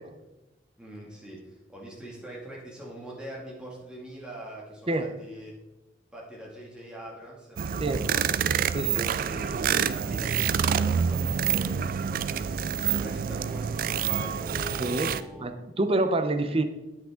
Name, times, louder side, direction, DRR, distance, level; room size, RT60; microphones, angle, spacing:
voice 1, 0.8-5.5 6.1-8.4 9.2-11.7 12.2-15.6, right 1 dB, 5° right, -4 dB, 2.3 m, -43 dB
sound 1, 7.6-15.2, right 7 dB, 55° right, 0.3 m, -27 dB
voice 2, 8.7-9.1 14.8-16.6, right 2 dB, 35° right, 8 dB, 0.7 m, -27 dB
8.8 x 7.7 x 3.7 m, 1.0 s
head